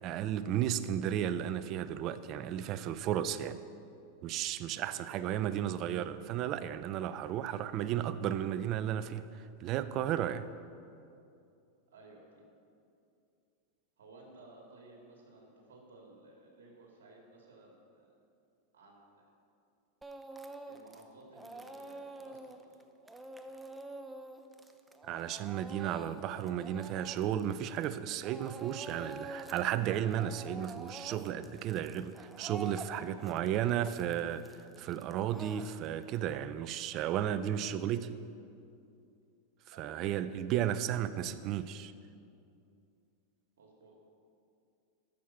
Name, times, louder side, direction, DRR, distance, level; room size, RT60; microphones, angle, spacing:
voice 1, 0.0-3.6 4.2-10.5 25.1-38.2 39.8-41.9, right 10 dB, 45° right, 0.5 m, -34 dB
voice 2, 4.8-5.4 11.9-12.4 14.0-18.1 18.7-19.3 20.7-22.8 32.9-33.3 39.7-40.3 43.6-44.0, right 2 dB, 85° right, 2.4 m, -56 dB
Speech / Crying sobbing, 20.0-21.0 21.3-28.0 28.2-29.7 29.9-36.2, right 2 dB, 10° right, 0.7 m, -47 dB
13.5 x 6.5 x 5.8 m
hypercardioid pair, 120°, 0 cm